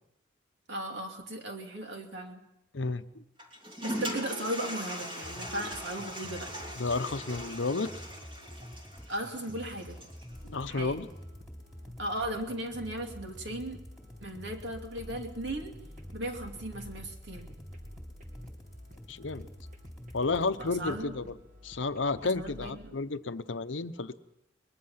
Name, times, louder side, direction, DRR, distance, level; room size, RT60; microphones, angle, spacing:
voice 1, 0.7-2.4 3.8-6.5 9.1-10.0 10.7-11.0 12.0-13.8 14.2-15.7 16.1-17.5 20.6-21.1 22.4-22.9, right 1 dB, 60° right, 3 dB, 2.8 m, -37 dB
voice 2, 2.7-3.2 6.8-7.9 10.5-11.1 19.1-19.5 20.1-21.4 21.6-24.2, left 3 dB, 70° left, 12 dB, 0.8 m, -32 dB
Toilet flush, 3.4-10.3, equal, 25° right, 3.0 m, -40 dB
sound 1, 5.0-21.0, equal, ahead, 3.4 m, -48 dB
sound 2, 10.3-22.9, left 1 dB, 45° right, 2.2 m, -52 dB
23.0 x 20.5 x 5.7 m, 0.86 s
head